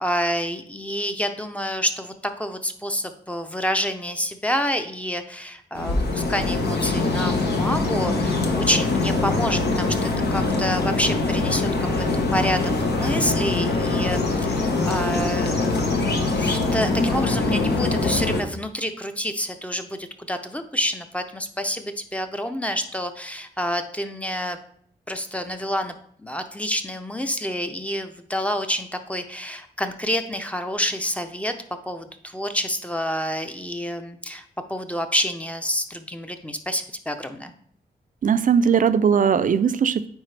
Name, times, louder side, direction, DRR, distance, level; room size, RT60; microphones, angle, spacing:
voice 1, 0.0-12.0 12.3-24.6 25.1-25.9 26.2-31.5 31.9-34.4 34.7-37.5, equal, 10° left, 7 dB, 0.5 m, -28 dB
sound 1, 5.7-18.4, left 3 dB, 80° left, 0.9 m, -23 dB
voice 2, 38.2-40.1, right 7 dB, 50° right, 13 dB, 0.4 m, -19 dB
9.0 x 3.6 x 3.3 m, 0.63 s
wide cardioid pair, 90°, 17 cm